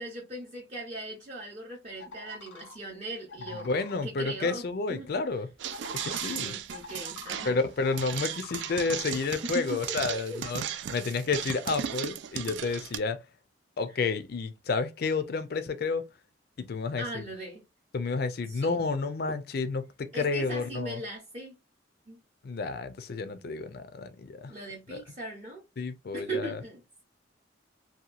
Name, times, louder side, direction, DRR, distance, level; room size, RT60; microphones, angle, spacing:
voice 1, 0.0-3.7 4.0-4.6 4.9-5.1 6.3-7.6 9.5-10.4 13.9-14.0 17.0-17.6 18.5-18.9 20.1-21.5 22.1-22.2 24.5-25.6 26.1-27.0, right 1 dB, 35° right, 0.6 m, -39 dB
sound 1, 2.0-2.7 3.3-3.9 5.7-7.5 7.8-9.1 9.7-9.8, left 3 dB, 90° left, 0.8 m, -44 dB
voice 2, 3.5-5.5 5.9-6.5 7.5-10.6 10.9-13.2 13.8-16.0 16.6-17.2 17.9-21.0 22.4-24.5 24.9-25.0 25.8-26.6, left 4 dB, 55° left, 0.4 m, -30 dB
sound 2, 5.6-13.0, right 9 dB, 75° right, 0.3 m, -36 dB
2.8 x 2.2 x 2.4 m
head